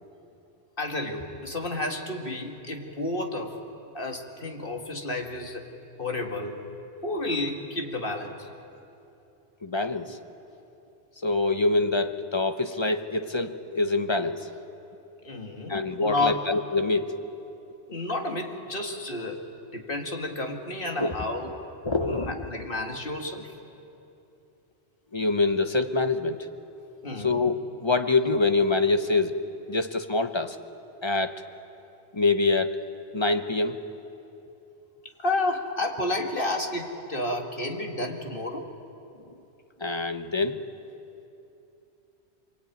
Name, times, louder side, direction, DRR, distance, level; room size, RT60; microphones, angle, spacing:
voice 1, 0.8-3.6 3.9-5.6 6.0-6.6 7.0-8.5 15.2-16.5 17.9-19.4 19.7-21.5 22.1-23.5 27.0-27.4 35.2-38.7, left 2 dB, 50° left, 2 dB, 2.5 m, -31 dB
voice 2, 9.6-10.2 11.2-14.5 15.7-17.2 21.0-21.1 21.8-22.5 25.1-26.5 27.2-29.4 29.7-30.6 31.0-31.4 32.1-32.8 33.1-33.8 39.8-40.6, left 3 dB, 25° left, 8 dB, 1.1 m, -25 dB
25.0 x 22.5 x 9.4 m, 2.8 s
omnidirectional pair, 1.2 m